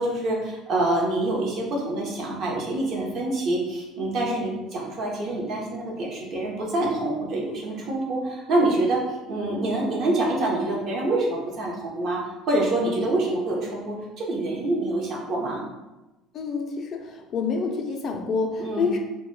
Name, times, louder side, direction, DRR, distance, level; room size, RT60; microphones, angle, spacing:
voice 1, 0.0-9.0 9.3-12.2 12.5-15.6 18.6-18.9, right 2 dB, 50° right, -2 dB, 0.7 m, -26 dB
voice 2, 16.3-19.0, left 4 dB, 45° left, 2 dB, 0.4 m, -27 dB
2.2 x 2.0 x 3.0 m, 1.0 s
cardioid pair, 120°, 0 cm